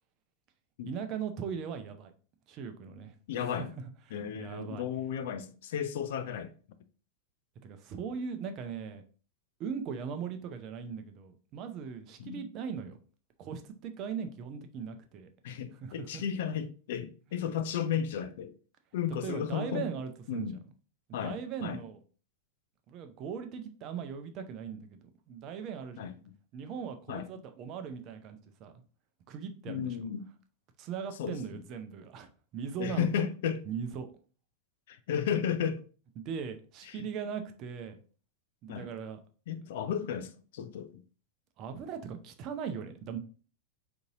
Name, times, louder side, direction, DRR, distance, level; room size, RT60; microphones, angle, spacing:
voice 1, 0.9-2.1 2.5-3.5 4.1-4.8 7.6-9.0 9.6-13.0 13.4-15.3 15.8-16.2 17.3-17.5 19.1-20.5 21.2-22.0 22.9-26.1 26.5-28.7 29.3-30.1 30.8-33.1 33.7-34.1 36.2-38.0 38.6-39.2 39.6-39.7 41.6-43.2, right 7 dB, 35° right, 0.6 m, -39 dB
voice 2, 3.3-3.7 4.1-6.5 12.2-12.5 15.4-18.5 18.9-19.9 20.3-20.6 21.1-21.8 26.0-26.1 27.1-27.3 29.7-30.3 31.2-31.6 32.8-33.6 34.9-35.9 36.8-37.1 38.7-38.9 39.5-41.0, left 8 dB, 55° left, 0.4 m, -34 dB
3.9 x 2.9 x 3.7 m
figure-of-eight pair, 90°, 0 cm